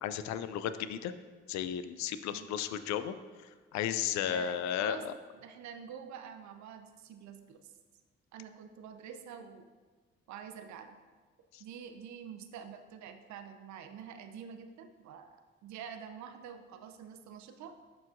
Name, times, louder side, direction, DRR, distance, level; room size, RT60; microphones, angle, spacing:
voice 1, 0.0-1.1 1.5-3.1 3.7-5.1 11.5-11.6, left 9 dB, 60° left, 12 dB, 0.5 m, -34 dB
voice 2, 4.2-5.1 5.3-7.7 8.3-9.7 10.3-11.0 11.6-17.7, right 7 dB, 65° right, 7 dB, 0.7 m, -47 dB
12.0 x 4.8 x 2.6 m, 1.4 s
hypercardioid pair, 40°, 31 cm